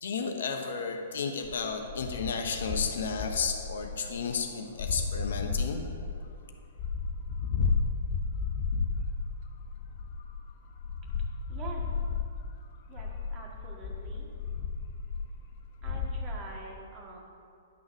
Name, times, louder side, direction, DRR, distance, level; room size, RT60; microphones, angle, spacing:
voice 1, 0.0-5.9, left 5 dB, 70° left, 5 dB, 0.9 m, -33 dB
sound 1, 1.4-4.4 4.8-6.3 6.6-10.4 10.7-12.5 12.9-16.3, left 4 dB, 55° left, 0.8 m, -33 dB
voice 2, 11.5-12.0 12.9-14.3 15.8-17.2, right 3 dB, 30° right, -1 dB, 1.8 m, -45 dB
11.0 x 4.0 x 6.2 m, 2.4 s
hypercardioid pair, 125°, 0 cm